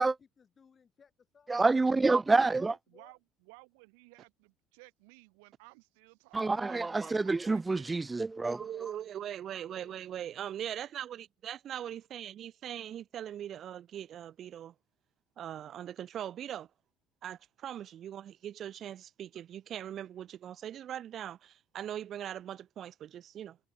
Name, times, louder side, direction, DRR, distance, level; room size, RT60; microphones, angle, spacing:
voice 1, 0.0-1.6 2.4-3.1 9.4-10.0, left 6 dB, 40° left, 6.1 m, -62 dB
voice 2, 1.5-2.7 6.3-8.6, right 3 dB, 20° right, 0.4 m, -27 dB
voice 3, 2.9-7.9, right 33 dB, 75° right, 5.6 m, -57 dB
voice 4, 8.6-14.7 15.4-16.7 17.2-23.6, right 10 dB, 55° right, 1.2 m, -41 dB
hypercardioid pair, 60°, 0 cm